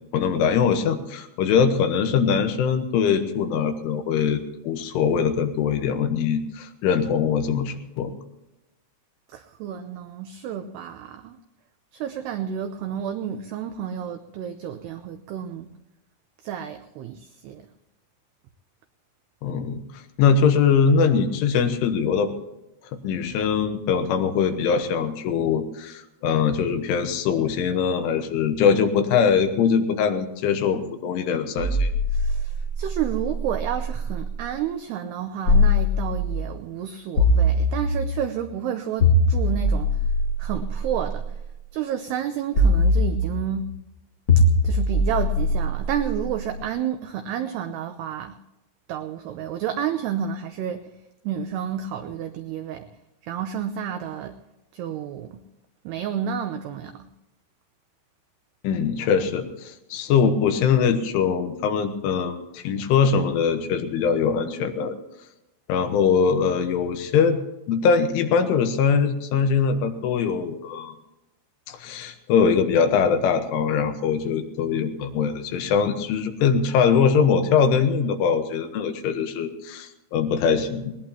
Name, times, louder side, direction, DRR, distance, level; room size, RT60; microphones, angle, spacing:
voice 1, 0.1-8.1 19.4-19.8 20.2-22.3 23.0-31.9 58.6-65.0 65.7-67.4 67.7-70.9 71.7-80.9, left 6 dB, 75° left, 7 dB, 3.6 m, -22 dB
voice 2, 9.3-11.3 12.0-15.7 16.5-17.6 32.3-32.4 32.8-39.9 40.4-41.2 41.7-43.6 44.6-48.3 48.9-50.8 51.3-52.8 53.3-54.3 54.8-55.3 55.9-56.9, right 9 dB, 90° right, 8 dB, 2.3 m, -30 dB
sound 1, 31.6-34.3 35.4-36.5 37.2-38.3 39.0-41.3 42.5-43.6 44.3-46.4, left 1 dB, 35° left, 2.1 m, -22 dB
20.0 x 19.5 x 2.9 m, 0.94 s
omnidirectional pair, 5.8 m